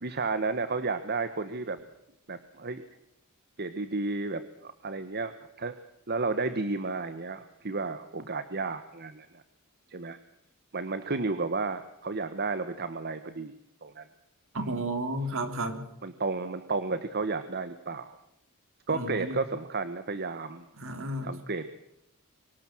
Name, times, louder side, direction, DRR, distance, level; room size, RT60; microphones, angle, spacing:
voice 1, 0.0-1.8 2.3-2.8 3.6-5.3 5.6-5.7 6.1-9.4 9.9-10.2 10.7-13.5 13.8-14.1 14.6-14.7 16.0-18.2 18.9-20.6 21.2-21.7, right 3 dB, 50° right, 11 dB, 1.3 m, -32 dB
voice 2, 14.5-15.8 18.9-19.4 20.8-21.3, right 1 dB, 65° right, 8 dB, 3.5 m, -32 dB
24.5 x 19.0 x 6.2 m, 0.79 s
head